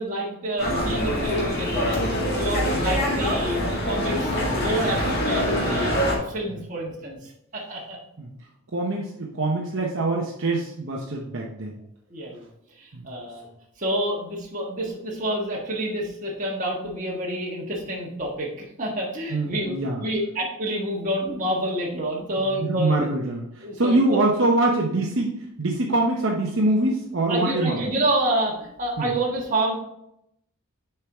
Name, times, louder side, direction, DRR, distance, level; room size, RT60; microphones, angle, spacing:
voice 1, 0.0-2.0 2.3-5.9 6.3-8.0 12.1-12.4 12.8-13.5 13.8-18.5 18.8-23.1 23.6-24.2 27.3-29.7, right 1 dB, 35° right, -3 dB, 1.5 m, -28 dB
sound 1, 0.6-6.2, equal, 45° left, 1.9 m, -24 dB
voice 2, 8.7-11.8 12.9-13.1 19.3-20.0 22.4-27.9 29.0-29.1, right 2 dB, 60° right, -1 dB, 0.8 m, -24 dB
6.8 x 4.6 x 3.5 m, 0.78 s
head